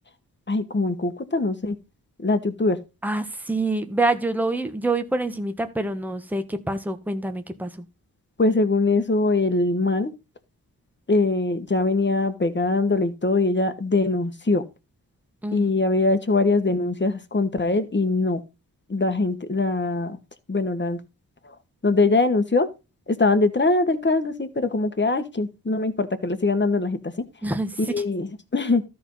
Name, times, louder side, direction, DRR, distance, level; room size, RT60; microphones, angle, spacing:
voice 1, 0.5-1.8 2.2-2.8 8.4-10.1 11.1-14.6 15.5-18.4 18.9-20.2 20.5-21.0 21.4-21.5 21.8-22.7 23.1-27.2 27.8-28.8, left 3 dB, 30° left, 1.4 m, -22 dB
voice 2, 3.0-7.8 15.4-15.7 27.4-28.0, right 2 dB, 5° right, 1.2 m, -26 dB
13.0 x 4.6 x 5.5 m
wide cardioid pair, 75°, 38 cm